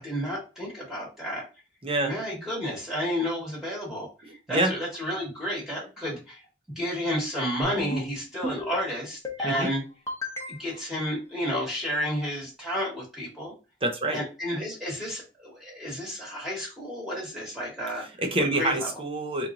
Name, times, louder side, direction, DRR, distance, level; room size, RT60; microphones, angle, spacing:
voice 1, 0.0-1.4 2.1-4.1 4.5-6.4 6.7-9.8 10.6-13.5 14.1-18.1 18.6-18.9, equal, ahead, -5 dB, 1.3 m, -31 dB
voice 2, 1.8-2.2 4.2-4.7 9.4-9.7 13.8-14.2 18.2-19.5, right 1 dB, 30° right, 4 dB, 0.7 m, -27 dB
sound 1, 7.6-8.1 8.4-8.9 9.2-9.7 10.1-10.8, left 1 dB, 15° left, 0.9 m, -33 dB
4.1 x 3.0 x 2.5 m, 0.30 s
head